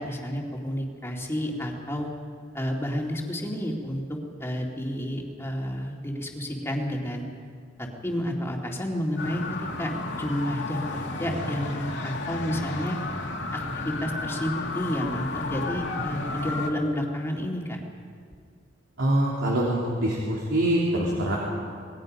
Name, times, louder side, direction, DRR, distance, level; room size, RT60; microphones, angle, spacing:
voice 1, 0.0-2.1 2.5-7.2 7.8-9.9 10.2-13.0 13.5-17.8, equal, 15° left, 0 dB, 2.4 m, -30 dB
sound 1, 9.2-16.7, left 3 dB, 65° left, 2.2 m, -33 dB
voice 2, 19.0-21.4, right 1 dB, 85° right, -5 dB, 3.3 m, -25 dB
26.5 x 20.5 x 5.4 m, 2.2 s
head